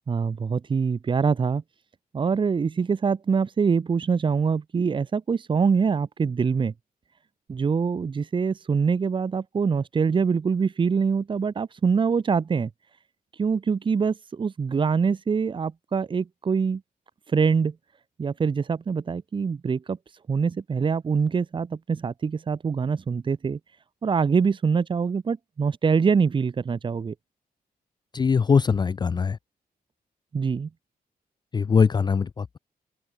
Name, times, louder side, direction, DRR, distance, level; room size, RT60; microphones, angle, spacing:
voice 1, 0.1-1.6 2.1-6.7 7.5-12.7 13.4-16.8 17.3-17.7 18.2-20.0 20.3-23.6 24.0-27.1 30.3-30.7, right 5 dB, 30° right, 1.1 m, -24 dB
voice 2, 28.1-29.4 31.5-32.6, left 5 dB, 30° left, 0.5 m, -21 dB
wide cardioid pair, 155°, 16 cm